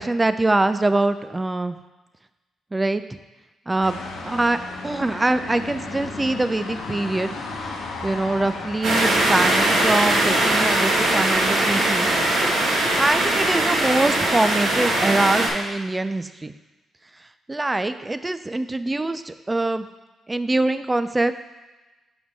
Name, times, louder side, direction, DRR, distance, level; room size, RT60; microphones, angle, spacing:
voice 1, 0.0-1.8 2.7-3.0 3.7-4.0 4.2-4.6 4.8-7.4 8.0-12.1 13.0-16.5 17.5-19.9 20.3-21.3, right 2 dB, 20° right, 11 dB, 0.4 m, -23 dB
sound 1, 3.8-9.8, left 3 dB, 75° left, 0.9 m, -34 dB
sound 2, 8.8-15.5, right 1 dB, 75° right, 1.3 m, -20 dB
5.5 x 4.9 x 4.7 m, 1.1 s
supercardioid pair, 55°, 0 cm